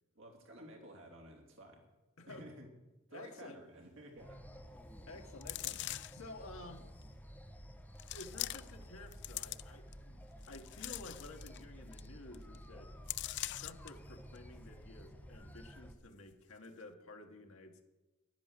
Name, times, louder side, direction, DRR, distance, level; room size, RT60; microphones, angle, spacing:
voice 1, 0.1-1.8 2.3-2.7 3.1-4.4, right 1 dB, 65° right, 1 dB, 3.0 m, -53 dB
voice 2, 2.2-2.5 3.1-3.6 5.1-6.9 8.1-12.9 13.5-17.8, left 2 dB, 80° left, 3 dB, 1.3 m, -52 dB
sound 1, 4.2-15.9, equal, 10° left, 1.0 m, -52 dB
sound 2, 5.4-6.3 7.0-7.1 8.0-8.8 9.1-9.9 10.4-11.6 11.9-12.1 12.3-12.6 13.1-13.9 14.4-14.5, left 16 dB, 55° left, 0.4 m, -42 dB
10.5 x 10.5 x 7.5 m, 1.1 s
head